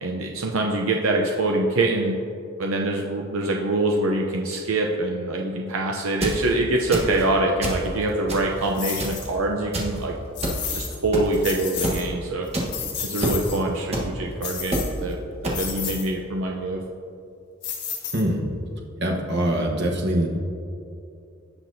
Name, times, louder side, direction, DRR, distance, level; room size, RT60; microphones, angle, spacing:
voice 1, 0.0-2.2 2.6-10.1 10.7-12.5 13.0-15.2 15.4-16.8, right 2 dB, 80° right, 1 dB, 0.7 m, -24 dB
sound 1, 6.0-6.4 6.9-7.2 7.6-7.9 8.3-8.7 9.0-9.3 9.7-9.9 10.4-10.6 11.1-11.4 11.8-11.9 12.5-12.6 13.2-13.4 13.9-14.0 14.7-14.8 15.4-15.6, right 1 dB, 30° right, 1.2 m, -26 dB
sound 2, 8.8-9.3 10.4-11.0 11.3-12.1 12.5-13.6 14.4-15.1 15.5-16.1 17.6-18.5, left 7 dB, 55° left, 1.4 m, -32 dB
voice 2, 19.0-20.3, right 1 dB, 55° right, 0 dB, 1.1 m, -23 dB
17.0 x 5.9 x 2.7 m, 2.6 s
head